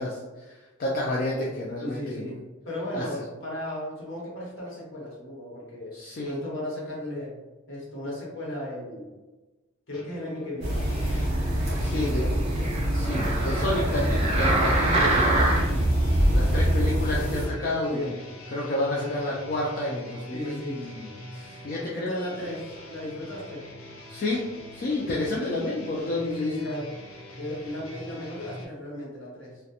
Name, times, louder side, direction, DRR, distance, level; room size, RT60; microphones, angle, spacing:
voice 1, 0.0-2.3 2.9-3.1 5.9-6.3 11.8-12.2 12.9-15.5 16.3-18.1 18.5-22.1 24.1-24.4 24.7-26.7, left 2 dB, 45° left, -4 dB, 0.3 m, -30 dB
voice 2, 1.8-5.9 6.2-7.4 7.7-9.1 9.9-10.8 12.0-12.8 17.6-18.1 19.0-19.1 20.3-20.8 21.9-23.7 26.2-26.9 27.4-29.6, left 1 dB, 60° left, -5 dB, 1.0 m, -35 dB
sound 1, 9.9-12.2 13.2-28.7, left 1 dB, 90° left, 0.6 m, -44 dB
sound 2, 10.6-17.5, equal, 50° right, 0.8 m, -25 dB
sound 3, 11.3-15.9 16.5-16.6, right 1 dB, 30° right, 0.4 m, -27 dB
2.3 x 2.1 x 2.7 m, 1.2 s
head